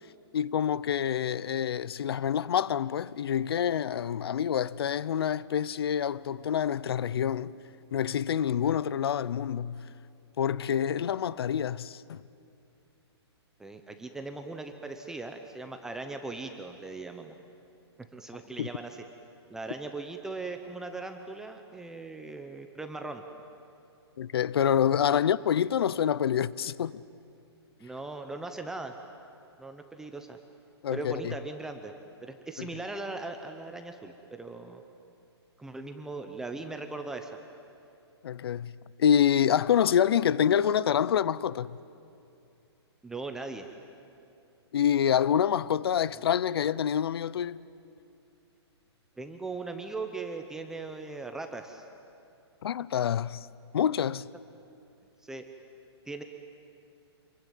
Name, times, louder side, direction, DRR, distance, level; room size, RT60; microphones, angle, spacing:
voice 1, 0.3-7.5 7.9-9.9 10.4-12.2 18.6-18.7 24.2-27.0 30.8-31.3 32.6-32.7 38.2-38.7 39.0-41.8 44.7-47.6 52.6-53.5 53.7-54.3, left 9 dB, 60° left, 0.7 m, -27 dB
voice 2, 13.6-17.4 18.1-18.9 19.5-23.2 25.1-25.2 27.8-28.9 29.6-30.4 30.9-31.9 32.2-34.8 35.6-37.4 43.0-43.7 49.2-51.8 55.2-55.4 56.1-56.2, right 3 dB, 5° right, 0.8 m, -39 dB
27.5 x 22.5 x 9.3 m
hypercardioid pair, 165°, 14 cm